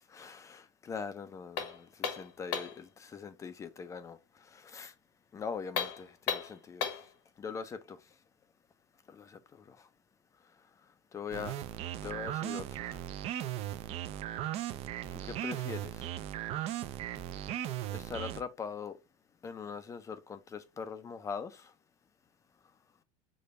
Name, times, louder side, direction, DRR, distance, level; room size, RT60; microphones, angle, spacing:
voice 1, 0.1-4.9 5.3-6.9 7.4-8.0 9.1-9.8 11.1-11.6 12.0-13.0 15.1-16.1 17.9-19.0 19.4-21.7, left 6 dB, 20° left, 0.4 m, -42 dB
sound 1, 1.6-2.8 5.6-7.1, left 7 dB, 80° left, 1.2 m, -35 dB
sound 2, 11.3-18.4, right 12 dB, 40° right, 0.4 m, -37 dB
5.1 x 2.3 x 3.9 m
supercardioid pair, 135°, 15 cm